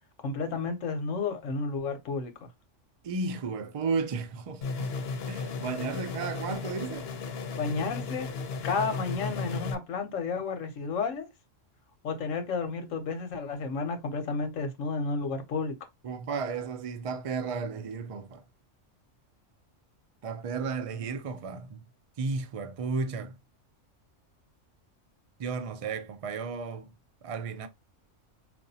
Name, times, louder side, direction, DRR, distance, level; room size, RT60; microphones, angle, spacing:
voice 1, 0.2-2.5 7.6-8.3 8.6-11.3 12.0-15.7, left 4 dB, 90° left, 1.2 m, -32 dB
voice 2, 3.0-4.9 5.3-7.1 16.0-18.4 20.2-21.8 22.2-23.4 25.4-26.9 27.2-27.7, right 4 dB, 55° right, 0.4 m, -33 dB
sound 1, 4.6-9.7, left 4 dB, 60° left, 0.9 m, -35 dB
4.6 x 2.6 x 2.7 m
omnidirectional pair, 1.3 m